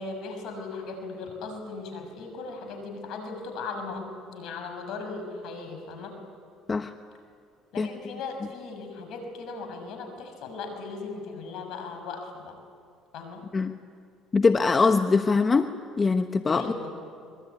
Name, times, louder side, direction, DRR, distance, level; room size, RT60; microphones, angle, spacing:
voice 1, 0.0-6.2 7.7-12.5 13.1-13.5 16.5-16.9, left 4 dB, 70° left, 5 dB, 6.5 m, -37 dB
voice 2, 14.3-16.7, left 4 dB, 30° left, 8 dB, 1.1 m, -22 dB
24.5 x 21.5 x 9.6 m, 2.3 s
supercardioid pair, 80°, 0 cm